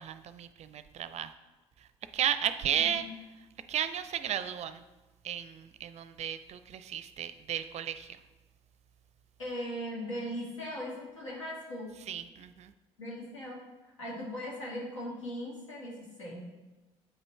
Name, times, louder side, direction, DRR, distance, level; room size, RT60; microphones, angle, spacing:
voice 1, 0.0-1.3 2.1-3.1 3.7-4.8 5.2-8.2 12.1-12.7, right 9 dB, 45° right, 12 dB, 0.5 m, -34 dB
voice 2, 2.7-3.1 9.4-11.9 13.0-13.6 14.0-16.4, equal, 85° left, -4 dB, 1.6 m, -39 dB
8.4 x 5.3 x 3.1 m, 1.1 s
figure-of-eight pair, 50°, 16 cm